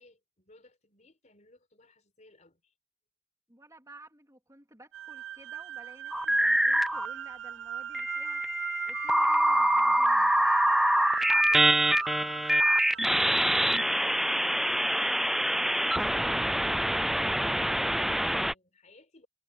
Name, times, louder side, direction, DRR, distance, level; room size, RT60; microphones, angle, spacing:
voice 1, 0.0-2.7 10.3-19.3, left 3 dB, 40° left, 4.9 m, -59 dB
voice 2, 3.5-10.3, right 2 dB, 15° right, 3.1 m, -54 dB
sound 1, 4.9-14.1, right 9 dB, 75° right, 0.3 m, -39 dB
sound 2, 6.1-7.1 7.9-18.5, equal, ahead, 0.4 m, -25 dB
head